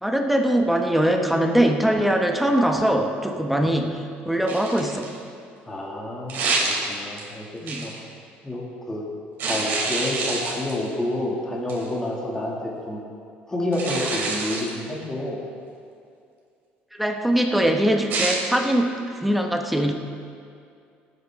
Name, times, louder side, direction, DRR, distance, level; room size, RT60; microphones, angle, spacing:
voice 1, 0.0-5.1 7.6-7.9 17.0-18.9 19.2-19.9, right 1 dB, ahead, 3 dB, 0.9 m, -22 dB
sound 1, 4.5-5.2 6.3-7.2 7.7-8.0 9.4-10.9 11.7-11.9 13.7-14.7 18.1-18.4, right 3 dB, 55° right, 3.1 m, -27 dB
voice 2, 5.7-7.9 8.4-9.1 9.4-12.5 12.9-13.0 13.5-15.4, left 1 dB, 15° left, -3 dB, 2.0 m, -29 dB
18.5 x 9.4 x 3.6 m, 2.4 s
cardioid pair, 135°, 4 cm